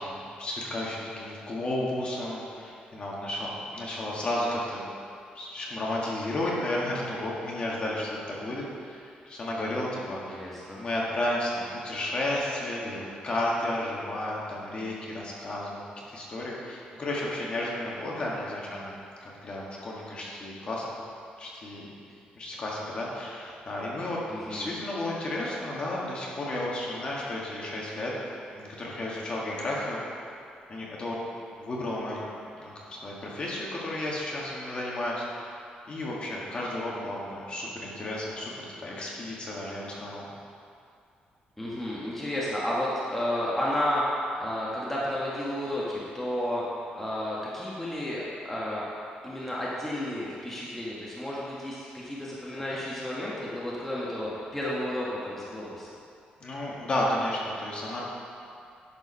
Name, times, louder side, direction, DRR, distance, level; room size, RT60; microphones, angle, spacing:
voice 1, 0.0-4.8 5.4-10.4 10.8-15.8 16.1-18.9 19.2-21.0 21.4-21.9 22.4-24.2 24.5-28.1 28.5-30.0 30.7-31.2 31.6-32.2 32.5-38.5 38.8-40.3 52.7-52.8 56.4-58.0, left 1 dB, 35° left, -4 dB, 1.8 m, -32 dB
voice 2, 10.3-10.8 24.3-24.8 41.6-46.6 46.9-48.8 49.2-55.9, left 1 dB, 10° left, -7 dB, 1.4 m, -32 dB
10.5 x 4.8 x 5.6 m, 2.4 s
cardioid pair, 135°, 3 cm